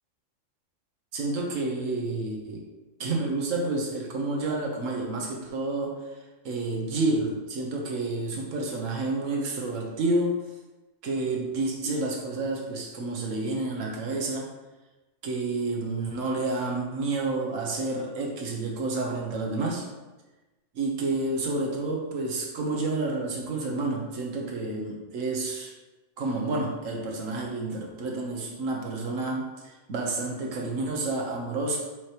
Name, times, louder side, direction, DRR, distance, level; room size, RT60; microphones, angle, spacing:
voice 1, 1.1-2.7 3.0-6.1 6.4-10.4 11.0-14.5 15.2-19.9 20.7-25.7 26.2-31.8, right 2 dB, 80° right, -1 dB, 1.4 m, -29 dB
7.8 x 3.0 x 4.9 m, 1.1 s
omnidirectional pair, 1.3 m